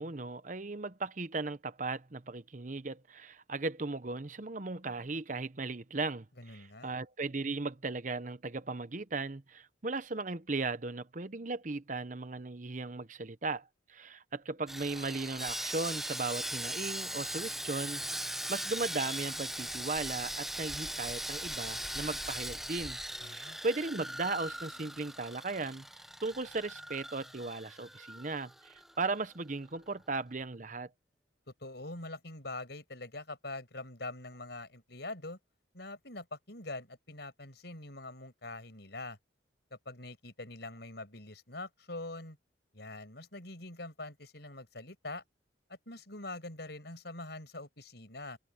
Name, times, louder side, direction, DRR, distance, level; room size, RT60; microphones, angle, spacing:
voice 1, 0.0-25.9 26.2-30.9, right 3 dB, 40° right, 0.9 m, -37 dB
voice 2, 6.4-6.9 23.2-23.6 31.6-35.4 35.7-39.2 39.9-42.4 42.7-45.2 45.9-48.4, left 2 dB, 60° left, 6.0 m, -44 dB
Sawing, 14.7-28.9 29.2-29.4 29.8-29.9, right 1 dB, ahead, 1.0 m, -40 dB
head